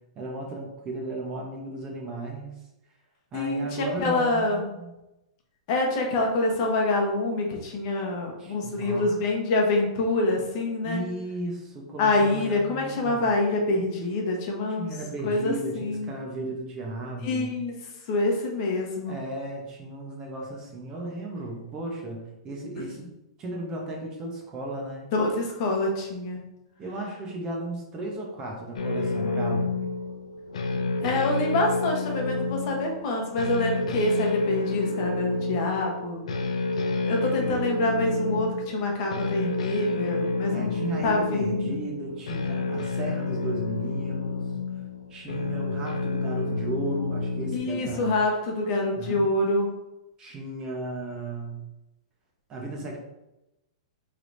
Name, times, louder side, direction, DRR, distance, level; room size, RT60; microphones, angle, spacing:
voice 1, 0.2-2.6 3.3-4.9 8.4-9.2 10.8-13.3 14.8-17.6 19.1-22.2 22.4-23.1 23.4-25.1 26.8-29.9 40.5-44.5 45.1-48.1 48.9-49.2 50.2-51.6 52.5-53.0, right 2 dB, 20° right, -1 dB, 0.7 m, -35 dB
voice 2, 3.3-3.7 4.0-4.7 5.7-11.0 12.0-14.9 15.2-16.1 17.2-17.7 18.1-19.2 25.1-26.4 31.0-36.2 37.0-41.7 47.5-49.7, left 2 dB, 40° left, 1 dB, 0.9 m, -26 dB
sound 1, 28.7-47.6, left 3 dB, 80° left, 0.6 m, -29 dB
4.6 x 3.3 x 2.6 m, 0.94 s
hypercardioid pair, 160°, 3 cm